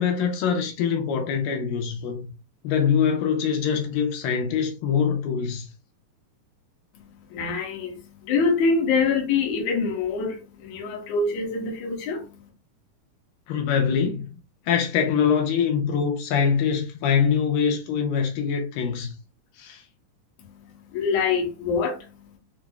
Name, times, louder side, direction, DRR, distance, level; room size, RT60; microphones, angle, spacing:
voice 1, 0.0-2.3 2.6-5.7 13.5-14.3 14.7-19.1 19.6-19.8, left 7 dB, 85° left, 2.4 m, -24 dB
voice 2, 6.9-12.5 20.4-22.4, left 4 dB, 65° left, 2.0 m, -26 dB
5.9 x 2.0 x 2.2 m
omnidirectional pair, 4.0 m